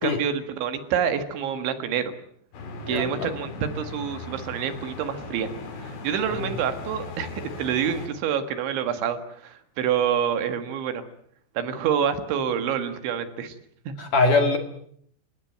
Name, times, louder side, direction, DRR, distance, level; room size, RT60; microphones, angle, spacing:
voice 1, 0.0-2.1 2.9-5.5 5.8-11.0 11.6-13.6 13.9-14.0, right 8 dB, 70° right, 9 dB, 3.9 m, -27 dB
sound 1, 2.5-8.1, left 3 dB, 75° left, 6.4 m, -38 dB
voice 2, 2.8-3.3 6.3-6.6 14.0-14.6, left 3 dB, 50° left, 6 dB, 3.0 m, -23 dB
29.5 x 17.0 x 9.2 m, 0.66 s
omnidirectional pair, 5.7 m